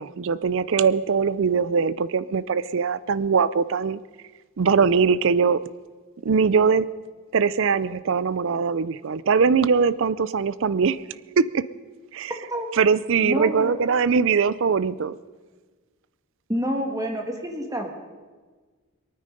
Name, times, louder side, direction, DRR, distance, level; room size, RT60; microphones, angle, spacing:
voice 1, 0.0-4.0 4.6-5.6 6.2-6.9 7.3-11.0 11.4-11.6 12.1-12.5 12.7-15.1, right 5 dB, 60° right, 18 dB, 0.5 m, -21 dB
voice 2, 12.3-12.7 13.2-13.8 16.5-17.9, equal, 15° right, 4 dB, 1.7 m, -28 dB
23.0 x 9.4 x 5.3 m, 1.4 s
head